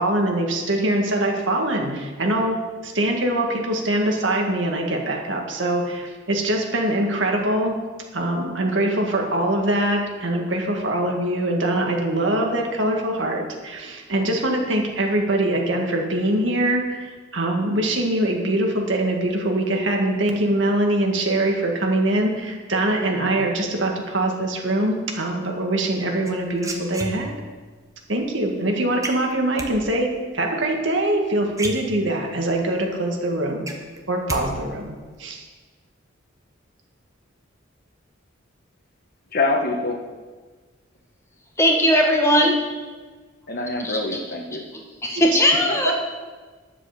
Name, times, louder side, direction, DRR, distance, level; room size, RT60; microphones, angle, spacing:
voice 1, 0.0-7.8 8.1-27.3 28.1-33.7 34.1-35.4 45.8-45.9, right 1 dB, 70° right, 1 dB, 1.9 m, -23 dB
sound 1, 26.2-27.6 29.0-29.7 31.1-31.2 31.5-32.4 32.8-32.9 33.2-34.4 34.7-35.2, right 2 dB, 15° right, 1.2 m, -32 dB
voice 2, 39.3-40.0 43.5-44.6 45.7-45.9, left 2 dB, 50° left, 3 dB, 1.4 m, -25 dB
voice 3, 41.6-42.5 43.8-44.0 44.5-44.6 45.0-45.9, equal, 15° left, 0 dB, 1.6 m, -18 dB
10.5 x 7.5 x 6.7 m, 1.4 s
head